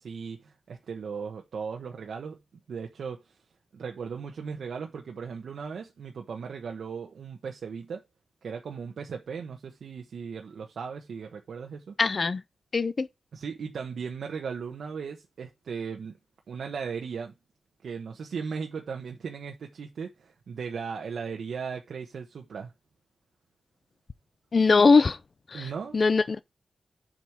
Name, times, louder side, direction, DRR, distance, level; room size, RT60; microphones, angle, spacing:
voice 1, 0.0-2.4 2.7-3.4 3.7-8.0 8.4-11.9 13.3-16.2 16.5-17.3 17.8-22.7 25.5-26.0, right 6 dB, 80° right, 1.1 m, -37 dB
voice 2, 12.0-12.4 12.7-13.1 24.5-25.2 25.5-26.4, left 4 dB, 40° left, 0.6 m, -21 dB
7.6 x 5.3 x 4.8 m
wide cardioid pair, 175°, 0 cm